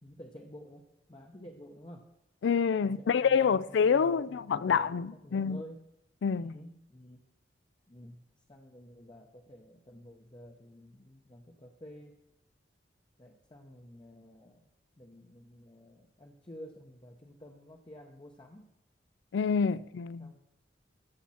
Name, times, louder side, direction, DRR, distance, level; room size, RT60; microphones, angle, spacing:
voice 1, 0.0-2.1 2.8-5.8 6.4-7.2 7.9-8.2 8.5-12.2 13.2-14.7 15.0-18.7 19.7-19.9 20.2-20.4, equal, 25° left, 0.8 m, -51 dB
voice 2, 2.4-5.6 6.2-6.6 19.3-20.3, left 6 dB, 80° left, 0.4 m, -27 dB
14.5 x 7.3 x 4.3 m
head